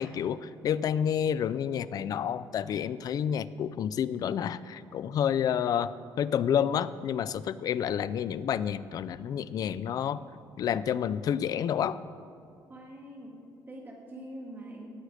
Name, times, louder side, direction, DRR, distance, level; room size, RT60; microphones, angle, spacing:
voice 1, 0.0-5.9 6.2-10.2 10.6-12.0, left 9 dB, 50° left, 16 dB, 0.4 m, -29 dB
voice 2, 12.7-14.9, right 1 dB, 25° right, 0 dB, 2.1 m, -44 dB
17.5 x 6.5 x 4.9 m, 2.4 s
cardioid pair, 130°, 8 cm